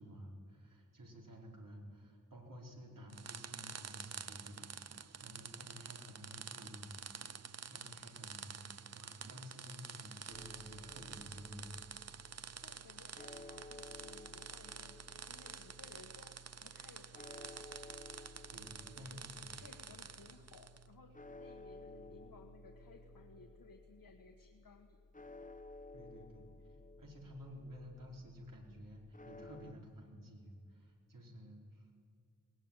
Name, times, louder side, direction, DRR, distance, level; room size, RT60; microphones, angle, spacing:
voice 1, 0.0-7.3 7.7-12.2 12.6-12.7 18.5-19.9 22.0-22.1 25.9-26.5 27.0-31.9, equal, 75° right, -1 dB, 4.7 m, -53 dB
sound 1, 3.1-20.9, right 6 dB, 50° right, 0.7 m, -49 dB
sound 2, 5.2-23.4, right 8 dB, 45° left, 5.2 m, -65 dB
sound 3, 10.3-29.7, left 2 dB, 25° left, 1.0 m, -56 dB
voice 2, 12.6-17.6 18.9-19.2 19.5-25.0, left 4 dB, 80° left, 4 dB, 1.6 m, -60 dB
20.5 x 19.0 x 9.1 m, 2.3 s
wide cardioid pair, 110°, 33 cm